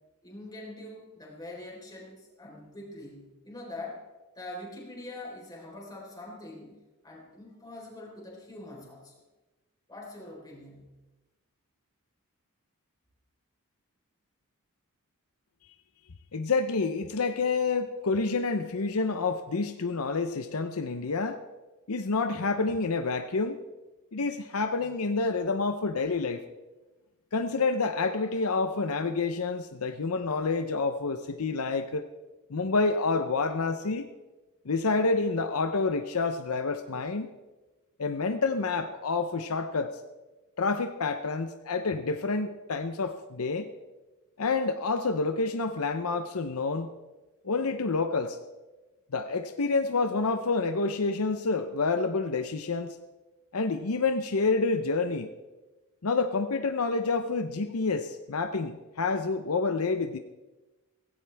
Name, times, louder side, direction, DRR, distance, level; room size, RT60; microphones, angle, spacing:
voice 1, 0.2-4.0 4.3-6.7 7.0-9.2 9.9-11.0, left 2 dB, 20° left, -2 dB, 4.0 m, -44 dB
voice 2, 16.3-21.4 21.9-23.6 24.1-26.4 27.3-32.1 32.5-34.1 34.7-37.3 38.0-40.0 40.6-43.7 44.4-46.9 47.4-48.4 49.1-52.9 53.5-55.3 56.0-60.2, left 4 dB, 75° left, 8 dB, 0.7 m, -28 dB
16.5 x 16.0 x 3.5 m, 1.1 s
head